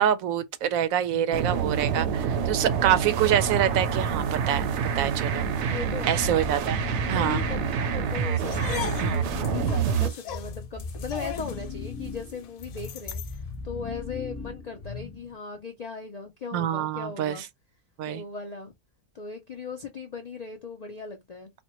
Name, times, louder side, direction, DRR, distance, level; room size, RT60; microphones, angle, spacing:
voice 1, 0.0-4.7 4.9-5.7 6.1-6.8 7.1-7.4 9.0-9.2 16.5-17.4 18.0-18.2, right 10 dB, 90° right, 1.0 m, -26 dB
sound 1, 1.3-10.1, right 7 dB, 65° right, 0.8 m, -27 dB
voice 2, 5.7-6.8 7.1-17.4 18.1-18.7 19.1-21.5, left 4 dB, 65° left, 0.4 m, -38 dB
sound 2, 6.1-15.4, left 4 dB, 25° left, 0.8 m, -38 dB
sound 3, 8.4-13.4, left 9 dB, 85° left, 1.1 m, -38 dB
4.2 x 2.1 x 2.9 m
omnidirectional pair, 1.4 m